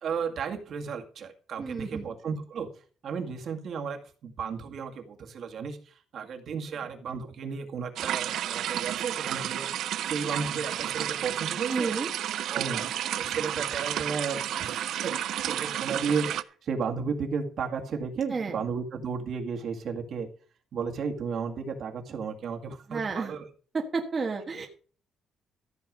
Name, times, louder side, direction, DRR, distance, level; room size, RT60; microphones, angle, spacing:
voice 1, 0.0-2.7 3.0-11.9 12.4-12.9 13.1-15.1 15.4-20.3 20.7-23.5, right 5 dB, 55° right, 4 dB, 2.1 m, -34 dB
voice 2, 1.6-2.1 11.7-12.1 18.3-18.6 22.9-23.3 23.7-24.7, right 4 dB, 30° right, 2 dB, 1.3 m, -31 dB
sound 1, 8.0-16.4, right 11 dB, 70° right, 0.6 m, -31 dB
14.0 x 7.1 x 5.2 m, 0.40 s
cardioid pair, 150°, 0 cm